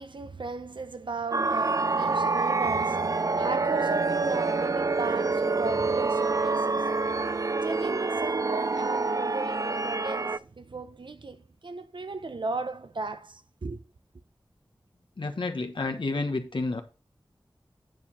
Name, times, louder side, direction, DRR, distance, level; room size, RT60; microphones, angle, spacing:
voice 1, 0.0-7.1 7.6-13.8, right 3 dB, 70° right, 0.8 m, -36 dB
sound 1, 1.3-10.4, right 3 dB, 45° right, 0.4 m, -27 dB
voice 2, 15.2-16.8, left 3 dB, 75° left, 1.2 m, -30 dB
9.6 x 4.6 x 5.4 m
wide cardioid pair, 60°, 8 cm